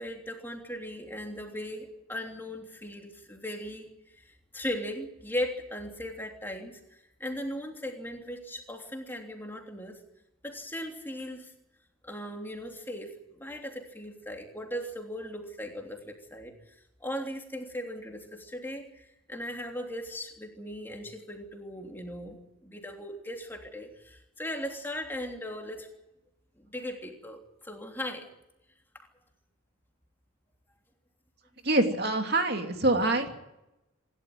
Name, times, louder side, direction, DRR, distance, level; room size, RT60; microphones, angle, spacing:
voice 1, 0.0-4.2 4.5-6.8 7.2-10.0 10.4-11.5 12.0-16.5 17.0-22.4 22.6-25.9 26.6-28.3 28.9-29.1, equal, 10° left, 2 dB, 3.2 m, -38 dB
voice 2, 31.6-33.3, right 2 dB, 50° right, 5 dB, 2.7 m, -25 dB
27.0 x 12.5 x 9.4 m, 0.92 s
head